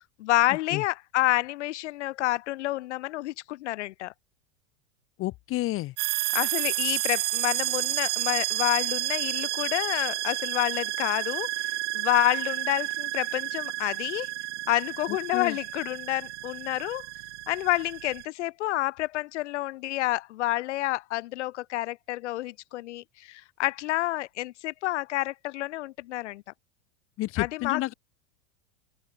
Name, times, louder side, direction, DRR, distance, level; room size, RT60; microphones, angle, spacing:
voice 1, 0.2-4.1 6.3-14.3 14.7-17.0 17.5-26.4 27.4-27.9, left 17 dB, 80° left, 1.3 m, -29 dB
voice 2, 5.2-5.9 15.1-15.6 27.2-27.9, left 17 dB, 40° left, 2.2 m, -30 dB
sound 1, 6.0-18.2, right 18 dB, 75° right, 2.7 m, -31 dB
open air
supercardioid pair, 145°, 34 cm